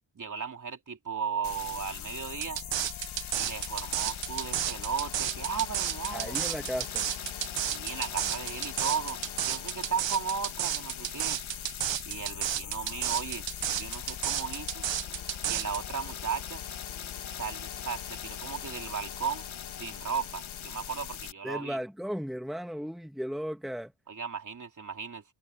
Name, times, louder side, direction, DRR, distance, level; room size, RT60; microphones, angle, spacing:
voice 1, 0.1-2.6 3.3-6.5 7.7-9.2 9.5-11.4 12.0-13.4 13.8-14.8 15.5-16.6 17.3-19.5 19.7-21.8 24.1-25.2, right 6 dB, 40° right, 3.0 m, -35 dB
sound 1, 1.3-10.0 12.3-20.0, left 7 dB, 35° left, 6.6 m, -55 dB
sound 2, 1.4-21.3, left 9 dB, 85° left, 2.1 m, -40 dB
sound 3, 2.4-15.8, right 11 dB, 70° right, 0.9 m, -31 dB
voice 2, 6.1-7.1 21.4-23.9, equal, ahead, 1.5 m, -35 dB
wide cardioid pair, 135°, 46 cm